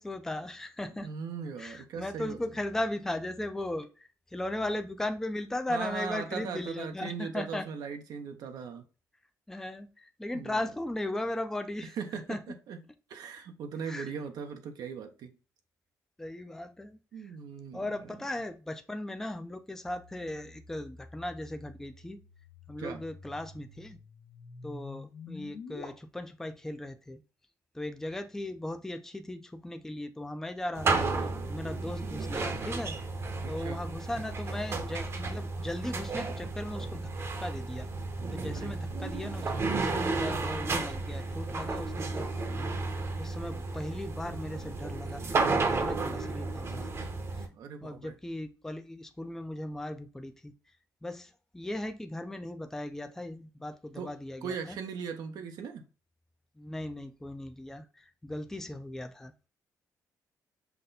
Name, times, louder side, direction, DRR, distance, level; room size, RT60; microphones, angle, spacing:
voice 1, 0.0-1.1 1.6-7.6 9.5-11.9 12.3-12.4 13.9-14.1 16.2-17.0 17.7-22.2 22.7-24.0 24.6-27.2 27.7-31.1 31.5-33.0 33.5-37.1 37.4-37.9 38.3-42.7 43.2-47.1 47.8-50.5 51.0-54.8 56.6-59.5, left 1 dB, 5° left, 0.5 m, -37 dB
voice 2, 1.0-2.4 5.7-8.8 10.3-10.7 11.8-12.8 13.1-15.3 17.1-17.9 22.8-23.0 33.4-33.8 38.5-38.7 47.5-48.1 54.0-54.1 54.4-55.8, right 6 dB, 70° right, 0.7 m, -39 dB
sound 1, 19.9-25.9, left 4 dB, 75° left, 1.3 m, -48 dB
sound 2, 30.7-47.5, right 3 dB, 40° right, 0.8 m, -33 dB
5.8 x 2.2 x 3.9 m
cardioid pair, 105°, 7 cm